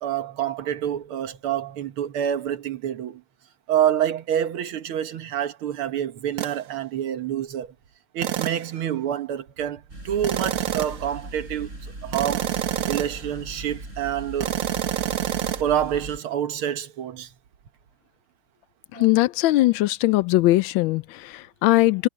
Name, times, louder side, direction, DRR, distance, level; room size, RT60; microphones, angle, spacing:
voice 1, 0.0-3.2 3.7-7.7 8.1-11.7 12.0-12.5 12.9-14.6 15.6-17.3 18.9-19.1, right 10 dB, 80° right, 2.1 m, -27 dB
sound 1, 6.4-6.6 8.2-8.7 10.2-11.1 12.1-13.3 14.4-15.6, right 12 dB, 65° right, 0.8 m, -27 dB
sound 2, 9.9-16.2, right 1 dB, 35° right, 7.0 m, -39 dB
voice 2, 18.9-22.1, left 17 dB, 75° left, 1.3 m, -20 dB
omnidirectional pair, 2.3 m